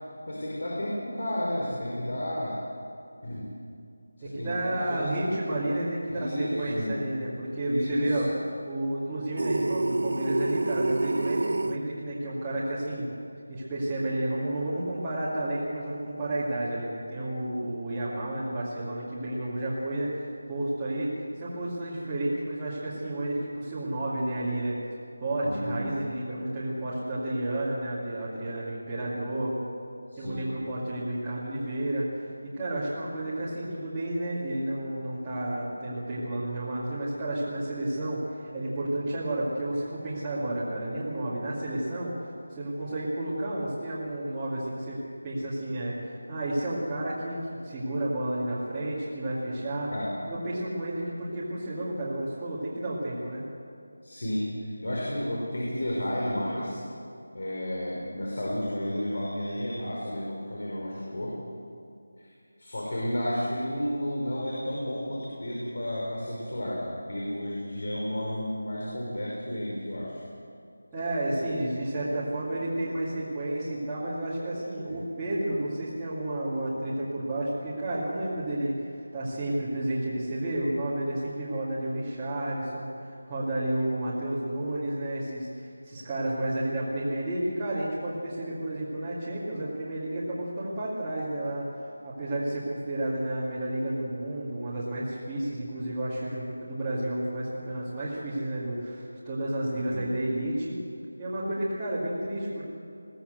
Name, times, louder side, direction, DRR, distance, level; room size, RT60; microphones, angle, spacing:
voice 1, 0.3-2.6 3.2-3.5 4.2-5.1 6.1-7.0 7.6-8.3 25.4-25.8 30.1-30.4 49.9-50.1 54.0-56.8 57.3-61.4 62.2-62.3 62.6-70.2 74.9-75.0 99.9-100.0, equal, 65° left, -3 dB, 5.3 m, -32 dB
voice 2, 4.2-8.3 8.6-13.1 13.5-24.8 25.2-29.6 30.2-49.9 50.3-53.4 70.9-91.7 92.0-100.8 101.2-102.6, right 1 dB, 5° right, -13 dB, 2.2 m, -31 dB
sound 1, 9.4-11.8, right 2 dB, 55° right, 0.9 m, -27 dB
21.5 x 16.0 x 8.0 m, 2.5 s
figure-of-eight pair, 180°, 0 cm